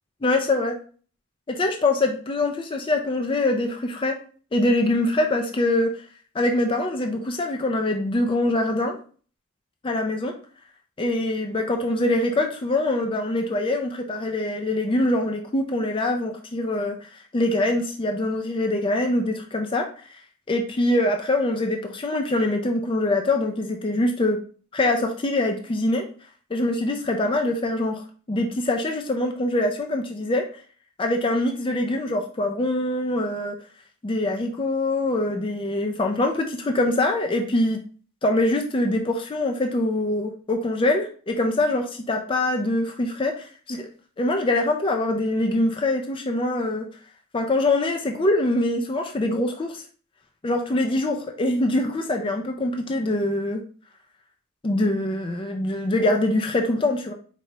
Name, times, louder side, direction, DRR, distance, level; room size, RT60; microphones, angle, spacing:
voice 1, 0.2-0.8 1.5-4.1 4.5-5.9 6.3-9.0 9.8-10.3 11.0-19.8 20.5-24.4 24.7-26.0 26.5-28.0 28.3-30.4 31.0-33.6 34.0-37.8 38.2-43.3 43.7-43.9 44.2-46.9 47.3-49.8 50.4-53.6 54.6-57.1, left 2 dB, 25° left, 4 dB, 0.4 m, -24 dB
4.5 x 2.9 x 2.8 m, 0.41 s
head